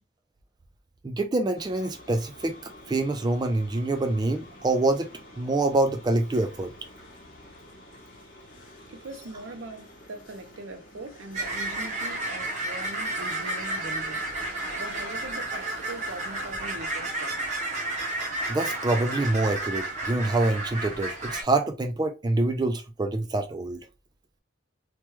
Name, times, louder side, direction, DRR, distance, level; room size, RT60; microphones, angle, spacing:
voice 1, 1.0-5.1 5.4-6.7 18.5-23.8, right 2 dB, 20° right, 0.3 m, -26 dB
sound 1, 1.6-16.6, left 1 dB, 45° left, 0.9 m, -49 dB
voice 2, 8.9-14.2 14.8-17.3, right 2 dB, 75° right, 0.6 m, -41 dB
sound 2, 11.3-21.4, right 2 dB, 40° right, 0.7 m, -32 dB
3.0 x 2.2 x 3.1 m
head